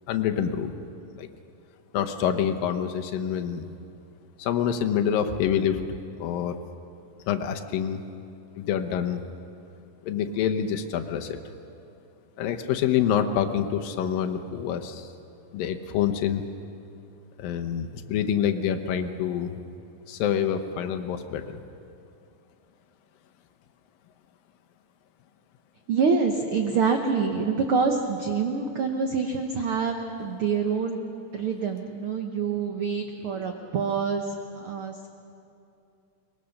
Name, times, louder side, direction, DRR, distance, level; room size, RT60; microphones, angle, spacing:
voice 1, 0.1-0.7 1.1-1.3 1.9-3.7 4.4-5.8 6.2-6.6 7.3-8.0 8.6-9.2 10.0-11.4 12.4-15.1 15.5-16.4 17.4-19.6 20.1-21.6, left 9 dB, 90° left, 6 dB, 2.8 m, -26 dB
voice 2, 25.9-31.0 31.3-35.1, right 5 dB, 80° right, 4 dB, 1.2 m, -26 dB
23.0 x 21.0 x 6.5 m, 2.6 s
omnidirectional pair, 3.9 m